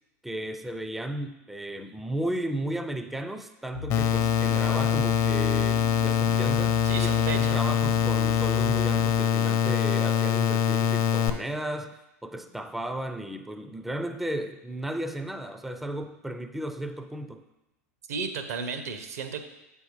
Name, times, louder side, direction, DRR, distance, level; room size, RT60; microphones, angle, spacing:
voice 1, 0.2-17.4, right 1 dB, ahead, 8 dB, 0.4 m, -34 dB
sound 1, 3.7-9.2, left 6 dB, 90° left, 0.4 m, -37 dB
sound 2, 3.9-11.3, left 9 dB, 40° left, 0.6 m, -24 dB
voice 2, 6.8-7.6 18.1-19.4, right 5 dB, 70° right, 8 dB, 0.8 m, -33 dB
8.1 x 5.4 x 3.1 m, 0.98 s
hypercardioid pair, 90°, 9 cm